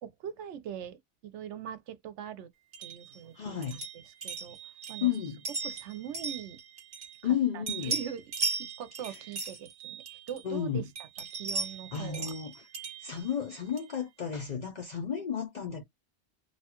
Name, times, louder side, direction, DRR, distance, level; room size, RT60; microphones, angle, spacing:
voice 1, 0.0-2.5 2.8-4.6 4.9-5.2 5.5-6.6 7.2-12.4, right 9 dB, 80° right, 0.9 m, -42 dB
sound 1, 2.7-7.4 7.7-10.6 11.0-14.0, right 4 dB, 60° right, 1.2 m, -38 dB
voice 2, 3.3-3.8 5.0-5.4 7.2-7.9 9.0-9.2 10.4-10.9 11.9-12.7 13.0-15.8, left 8 dB, 55° left, 0.5 m, -32 dB
2.7 x 2.3 x 2.8 m
omnidirectional pair, 1.2 m